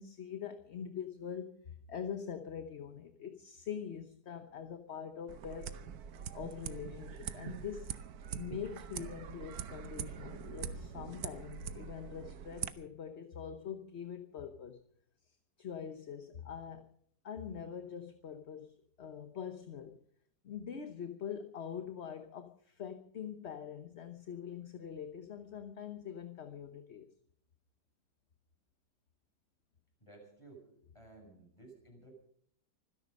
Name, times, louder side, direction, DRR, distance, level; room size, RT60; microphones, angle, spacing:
voice 1, 0.0-5.7 6.3-8.0 8.4-14.8 15.6-16.8 17.2-20.0 20.4-27.1, left 8 dB, 45° left, 8 dB, 1.1 m, -44 dB
sound 1, 5.3-12.7, right 9 dB, 65° right, 1.3 m, -43 dB
voice 2, 30.0-30.6 30.9-32.1, right 3 dB, 15° left, 1 dB, 6.7 m, -55 dB
25.0 x 10.5 x 5.3 m, 0.64 s
omnidirectional pair, 1.8 m